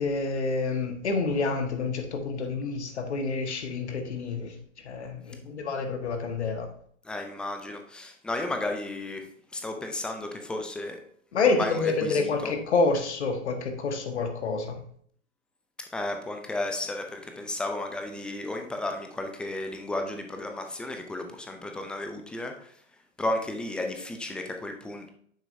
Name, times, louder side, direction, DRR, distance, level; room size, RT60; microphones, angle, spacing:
voice 1, 0.0-4.5 4.8-6.7 11.3-14.8, left 3 dB, 60° left, 6 dB, 1.5 m, -28 dB
voice 2, 7.0-9.3 9.5-11.0 11.4-12.5 15.9-22.7 23.2-25.1, left 2 dB, 5° left, 4 dB, 0.4 m, -33 dB
9.0 x 7.3 x 2.7 m, 0.62 s
figure-of-eight pair, 105°, 37 cm